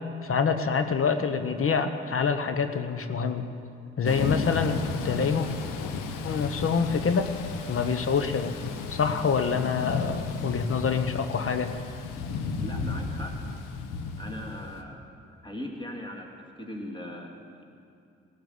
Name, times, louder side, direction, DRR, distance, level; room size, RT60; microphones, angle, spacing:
voice 1, 0.2-3.4 4.0-5.5 6.2-7.3 7.7-8.5 8.9-11.7, left 5 dB, 40° left, 8 dB, 0.9 m, -26 dB
Thunder / Rain, 4.0-14.8, left 4 dB, 65° left, 1.0 m, -34 dB
voice 2, 12.6-13.4 14.2-15.0 15.4-17.6, left 1 dB, 15° left, 1 dB, 2.4 m, -39 dB
18.5 x 6.6 x 9.7 m, 2.5 s
figure-of-eight pair, 40°, 34 cm